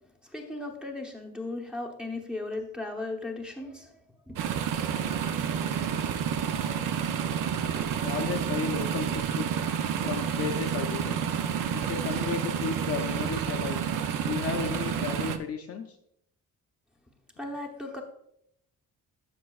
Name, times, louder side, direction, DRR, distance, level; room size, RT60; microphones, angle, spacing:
voice 1, 0.2-4.4 17.4-18.0, left 2 dB, ahead, -2 dB, 0.8 m, -37 dB
sound 1, 4.4-15.4, right 8 dB, 60° right, 0.6 m, -29 dB
voice 2, 8.0-9.5 10.0-11.2 11.7-13.8 14.2-16.0, left 7 dB, 40° left, 4 dB, 0.5 m, -34 dB
12.5 x 6.1 x 2.3 m, 0.75 s
cardioid pair, 180°, 37 cm